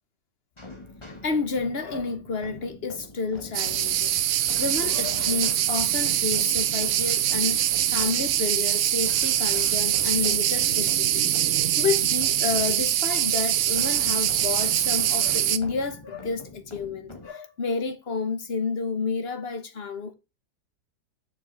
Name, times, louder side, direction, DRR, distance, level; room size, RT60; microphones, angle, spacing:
sound 1, 0.6-17.3, left 2 dB, 15° left, 1.7 m, -44 dB
voice 1, 1.2-11.4 11.8-20.1, left 4 dB, 40° left, 1.2 m, -30 dB
sound 2, 3.5-15.6, right 12 dB, 65° right, 0.7 m, -24 dB
7.0 x 6.8 x 3.4 m
omnidirectional pair, 1.9 m